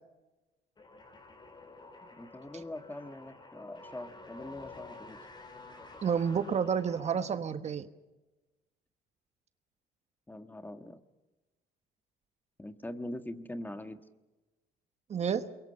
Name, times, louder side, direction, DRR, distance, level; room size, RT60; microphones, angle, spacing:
sound 1, 0.8-7.5, left 3 dB, 25° left, 4.8 m, -50 dB
voice 1, 2.1-5.2 10.3-11.0 12.6-14.0, left 1 dB, 10° left, 1.5 m, -43 dB
voice 2, 6.0-7.9 15.1-15.5, right 7 dB, 40° right, 1.3 m, -30 dB
28.0 x 23.0 x 5.5 m
cardioid pair, 110°, 17 cm